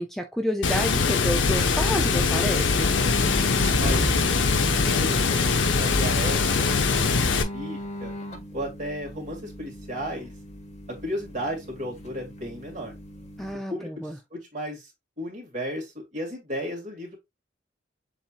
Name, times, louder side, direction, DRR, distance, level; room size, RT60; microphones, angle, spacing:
voice 1, 0.0-2.9 13.4-14.2, equal, ahead, 0.4 m, -29 dB
Water, 0.6-7.4, left 4 dB, 85° left, 0.7 m, -22 dB
sound 1, 2.7-13.5, equal, 35° left, 1.1 m, -37 dB
sound 2, 3.6-5.5, right 2 dB, 85° right, 0.8 m, -34 dB
voice 2, 3.8-4.2 4.6-6.7 7.0-8.1 8.5-10.3 10.9-12.9 13.7-14.9 15.2-17.1, equal, 40° right, 2.3 m, -34 dB
7.2 x 2.9 x 2.4 m
head